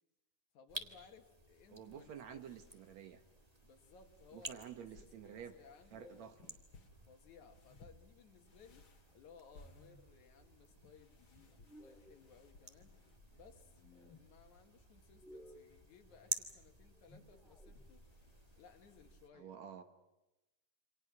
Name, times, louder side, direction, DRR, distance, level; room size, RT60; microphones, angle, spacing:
voice 1, 0.5-2.6 3.6-6.6 7.1-13.0 13.3-18.0 18.6-19.5, left 6 dB, 65° left, 5 dB, 2.9 m, -62 dB
sound 1, 0.7-19.3, right 2 dB, 25° right, 0.8 m, -52 dB
voice 2, 1.7-3.2 4.3-5.5 5.9-6.5 19.3-19.8, right 8 dB, 65° right, 7 dB, 2.2 m, -50 dB
sound 2, 2.4-19.1, left 3 dB, 45° left, 2.4 m, -67 dB
sound 3, 5.8-6.4 7.5-8.1 9.5-10.1 11.5-12.2 13.5-14.3 15.0-15.9 16.8-18.1, equal, ahead, 1.4 m, -60 dB
28.5 x 26.0 x 6.0 m, 0.98 s
omnidirectional pair, 3.7 m